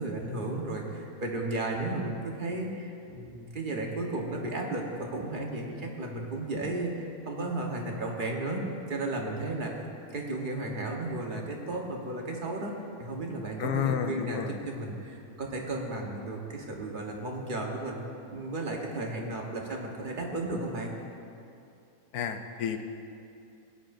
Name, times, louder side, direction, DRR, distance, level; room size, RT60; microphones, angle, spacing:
voice 1, 0.0-8.6 8.9-9.8 10.1-18.0 18.3-20.9, right 2 dB, 35° right, 0 dB, 1.2 m, -34 dB
voice 2, 13.6-14.6 22.1-22.8, left 8 dB, 85° left, 7 dB, 1.2 m, -30 dB
16.5 x 9.9 x 2.6 m, 2.6 s
omnidirectional pair, 1.5 m